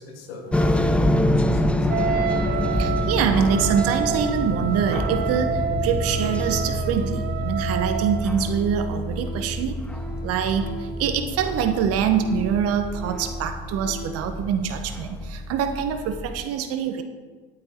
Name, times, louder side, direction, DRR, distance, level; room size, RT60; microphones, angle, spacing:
voice 1, 0.0-2.0, left 3 dB, 75° left, 3 dB, 2.3 m, -41 dB
sound 1, 0.5-16.4, left 1 dB, 5° left, 0.7 m, -27 dB
Wind instrument woodwind instrument, 1.9-8.5, right 8 dB, 35° right, 0.7 m, -29 dB
voice 2, 2.7-9.8 10.2-17.0, right 7 dB, 50° right, 7 dB, 1.5 m, -25 dB
Organ, 4.8-14.4 14.7-14.8, left 1 dB, 80° right, 1.5 m, -41 dB
11.5 x 8.7 x 4.8 m, 1.4 s
hypercardioid pair, 90°, 30 cm